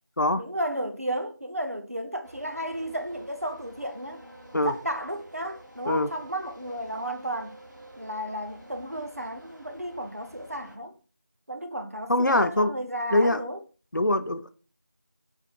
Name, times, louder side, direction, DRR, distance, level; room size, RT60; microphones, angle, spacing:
voice 1, 0.4-4.2 4.6-7.6 8.0-10.9 11.5-13.6, right 1 dB, 50° right, 0.6 m, -33 dB
sound 1, 2.2-10.8, right 1 dB, 85° right, 1.5 m, -49 dB
voice 2, 12.1-12.7 13.1-13.4 13.9-14.5, left 1 dB, 75° left, 0.6 m, -23 dB
4.3 x 2.4 x 4.2 m
figure-of-eight pair, 180°, 10 cm